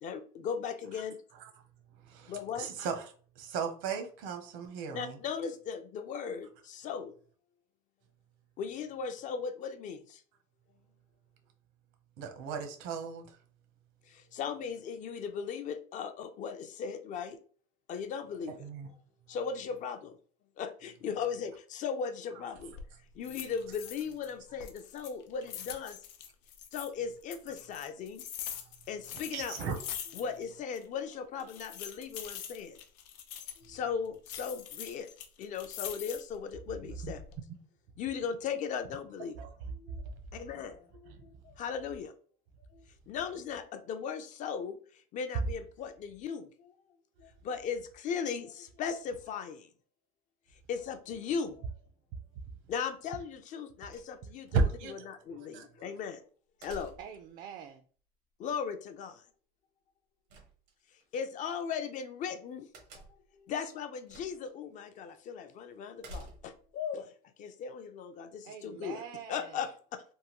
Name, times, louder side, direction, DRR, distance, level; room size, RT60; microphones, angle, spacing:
voice 1, 0.0-1.2 2.3-2.7 4.9-7.1 8.6-10.2 14.1-17.4 17.9-18.7 19.3-20.2 20.6-22.8 23.2-26.0 26.7-28.3 28.9-29.6 30.1-32.8 33.6-35.1 35.4-37.2 38.0-39.4 39.7-40.0 40.3-42.1 42.7-46.7 47.2-49.7 50.7-51.7 52.7-54.5 54.9-56.2 56.6-56.9 58.4-59.2 61.1-62.7 63.1-67.1 67.4-69.0 69.3-70.0, left 6 dB, 40° left, 0.4 m, -38 dB
voice 2, 2.0-5.2 12.2-13.4 18.6-18.9 28.5-28.6 29.3-29.8 37.0-37.4 39.4-39.5 40.3-40.5 41.1-41.2 54.5-55.7, right 5 dB, 70° right, 0.8 m, -35 dB
sound 1, 22.5-22.9 23.2-24.3 24.6-26.9 27.3-30.5 30.7-30.8 31.4-33.7 34.3-36.4 36.9-37.4, left 9 dB, 85° left, 0.6 m, -43 dB
sound 2, 53.9-54.5 56.6-57.3 60.3-61.0 62.7-63.4 64.1-64.5 64.9-65.0 66.0-66.7, right 1 dB, 90° right, 1.2 m, -49 dB
voice 3, 57.0-57.8 68.4-69.6, right 8 dB, 45° right, 0.4 m, -45 dB
3.5 x 2.2 x 2.9 m
cardioid pair, 135°, 20 cm